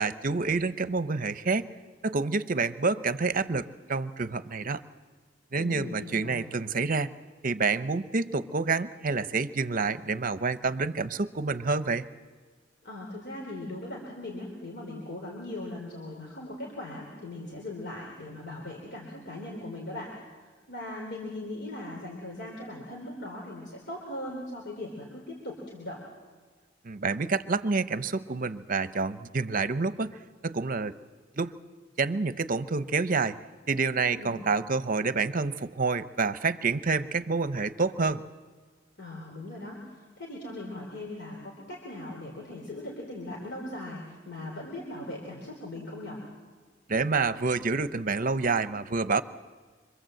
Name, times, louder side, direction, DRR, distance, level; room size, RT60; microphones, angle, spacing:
voice 1, 0.0-1.7 2.0-4.8 5.5-7.1 7.4-12.1 26.8-30.9 31.4-31.5 32.0-33.4 33.7-38.2 46.9-49.2, right 4 dB, 45° right, 12 dB, 0.8 m, -28 dB
voice 2, 5.5-6.4 12.8-20.1 20.4-26.0 34.1-34.4 39.0-46.2, left 1 dB, 60° left, -2 dB, 3.9 m, -39 dB
26.0 x 25.0 x 7.8 m, 1.5 s
head